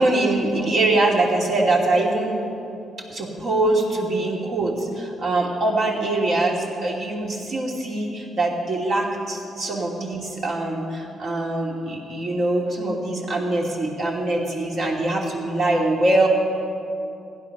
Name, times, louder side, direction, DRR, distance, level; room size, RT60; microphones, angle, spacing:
voice 1, 0.0-2.4 3.1-16.3, right 2 dB, 60° right, -1 dB, 2.8 m, -23 dB
16.5 x 11.0 x 6.1 m, 2.8 s
cardioid pair, 90°, 0 cm